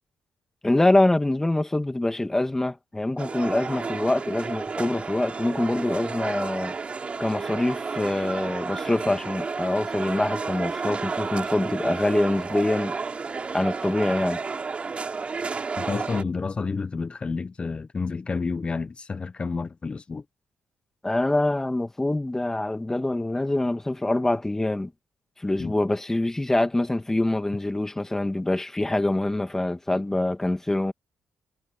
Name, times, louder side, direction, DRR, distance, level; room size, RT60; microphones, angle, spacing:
voice 1, 0.6-6.7 7.2-12.9 13.5-14.4 21.0-24.9 25.4-30.9, left 2 dB, 10° left, 2.0 m, -25 dB
sound 1, 3.2-16.2, right 4 dB, 30° right, 3.8 m, -31 dB
voice 2, 15.8-20.2 25.6-25.7, left 4 dB, 30° left, 1.0 m, -30 dB
cardioid pair, 115°, 4 cm